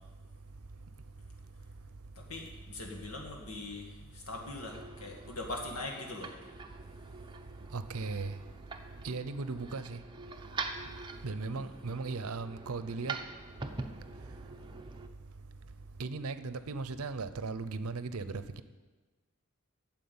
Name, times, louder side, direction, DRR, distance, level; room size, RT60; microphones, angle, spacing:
voice 1, 2.2-6.3 11.4-11.7, left 2 dB, 85° left, 2.0 m, -42 dB
sound 1, 4.5-15.1, right 4 dB, 20° right, 0.7 m, -45 dB
voice 2, 7.7-8.4 9.0-10.0 11.2-13.2 16.0-18.6, right 4 dB, 75° right, 0.6 m, -37 dB
9.4 x 7.4 x 8.7 m
head